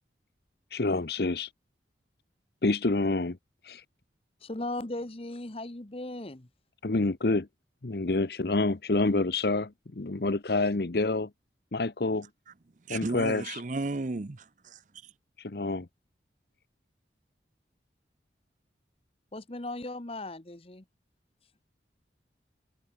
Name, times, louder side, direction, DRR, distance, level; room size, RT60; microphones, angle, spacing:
voice 1, 0.7-1.5 2.6-3.4 3.6-3.8 6.8-7.5 7.8-11.3 11.7-12.3 12.9-13.6 15.4-15.9, left 2 dB, 60° left, 0.9 m, -28 dB
voice 2, 4.4-6.5 19.3-20.8, left 2 dB, 30° left, 1.1 m, -37 dB
voice 3, 12.9-15.1, right 3 dB, 45° right, 0.6 m, -35 dB
head